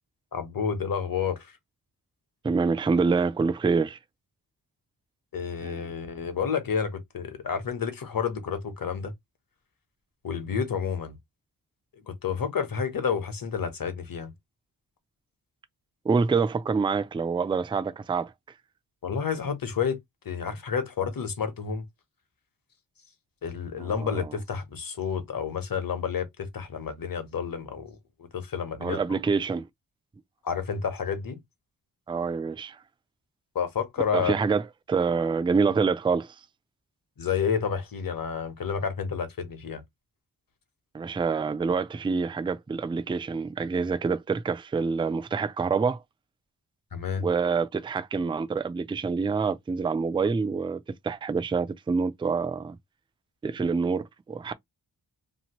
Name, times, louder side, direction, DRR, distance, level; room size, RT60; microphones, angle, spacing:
voice 1, 0.3-1.5 5.3-9.1 10.2-11.1 12.1-14.3 19.0-20.0 20.2-21.8 23.4-27.9 28.3-29.2 30.4-31.4 33.5-34.3 37.2-39.8 46.9-47.3, left 6 dB, 55° left, 1.0 m, -30 dB
voice 2, 2.4-4.0 5.6-5.8 16.1-18.3 23.8-24.3 28.8-29.7 32.1-32.8 34.1-34.6 34.9-36.3 40.9-46.0 47.2-52.8 53.4-54.5, right 5 dB, 15° right, 0.3 m, -26 dB
2.9 x 2.5 x 2.9 m
wide cardioid pair, 85°, 41 cm